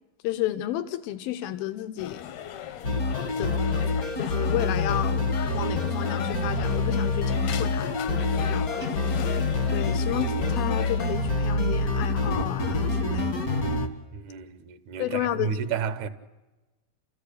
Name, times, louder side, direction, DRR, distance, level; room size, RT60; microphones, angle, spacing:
voice 1, 0.2-2.4 3.4-3.5 4.2-7.9 8.5-9.3 9.7-13.5 15.0-15.5, left 13 dB, 90° left, 2.7 m, -32 dB
sound 1, 2.0-11.1, left 9 dB, 70° left, 1.7 m, -38 dB
sound 2, 2.8-13.9, left 3 dB, 50° left, 1.0 m, -26 dB
voice 2, 14.1-16.1, right 7 dB, 65° right, 2.1 m, -32 dB
29.0 x 14.5 x 8.4 m
omnidirectional pair, 4.1 m